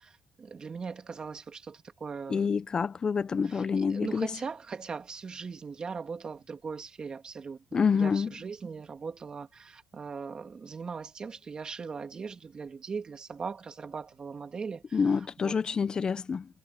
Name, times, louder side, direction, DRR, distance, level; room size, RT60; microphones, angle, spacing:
voice 1, 0.0-2.5 3.4-15.5, right 5 dB, 30° right, 2.4 m, -40 dB
voice 2, 2.3-4.3 7.7-8.3 14.9-16.5, left 5 dB, 30° left, 0.5 m, -27 dB
cardioid pair, 150°, 3 cm